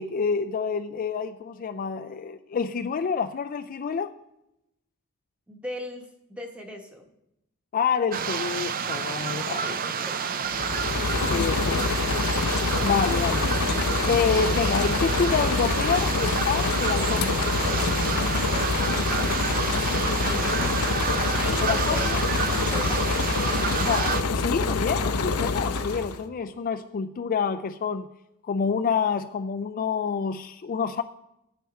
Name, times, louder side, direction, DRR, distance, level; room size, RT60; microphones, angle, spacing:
voice 1, 0.0-4.1 7.7-9.8 11.3-12.0 12.4-13.5 14.1-17.5 21.6-22.2 23.8-28.1 28.4-31.0, left 6 dB, 40° left, 8 dB, 0.3 m, -28 dB
voice 2, 5.5-7.1 9.1-10.2 10.7-10.9 19.7-20.9 21.3-22.1 22.4-23.0, left 1 dB, 5° right, 3 dB, 1.2 m, -39 dB
sound 1, 8.1-24.2, right 6 dB, 40° right, 0.5 m, -29 dB
sound 2, 10.4-26.2, left 4 dB, 85° left, 0.7 m, -26 dB
12.0 x 9.2 x 4.2 m, 0.87 s
head